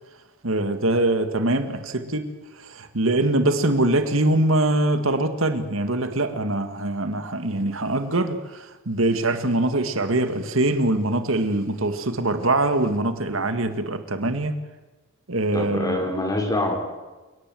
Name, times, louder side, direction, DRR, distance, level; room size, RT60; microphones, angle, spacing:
voice 1, 0.4-2.3 2.6-14.6 15.3-16.0, right 2 dB, 70° right, 2.1 m, -23 dB
voice 2, 15.5-16.9, left 1 dB, 15° left, 5.6 m, -25 dB
29.5 x 18.5 x 7.8 m
head